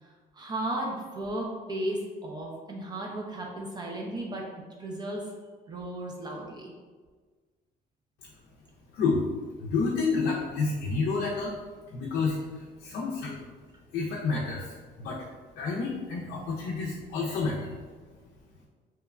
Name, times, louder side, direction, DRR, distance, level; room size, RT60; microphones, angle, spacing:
voice 1, 0.0-4.5 4.8-5.3 5.7-6.7, right 1 dB, 25° right, -1 dB, 0.4 m, -35 dB
voice 2, 9.6-11.5 11.9-13.4 13.9-15.2 15.6-17.7, left 4 dB, 75° left, -3 dB, 0.4 m, -29 dB
2.9 x 2.1 x 2.3 m, 1.4 s
cardioid pair, 110°, 17 cm